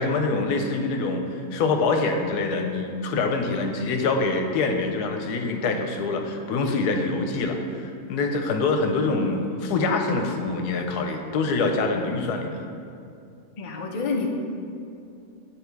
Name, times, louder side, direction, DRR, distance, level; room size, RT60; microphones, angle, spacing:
voice 1, 0.0-12.7, left 3 dB, 85° left, 4 dB, 1.2 m, -25 dB
voice 2, 13.6-14.3, left 4 dB, 55° left, 1 dB, 0.4 m, -28 dB
9.0 x 3.5 x 4.6 m, 2.5 s
omnidirectional pair, 1.7 m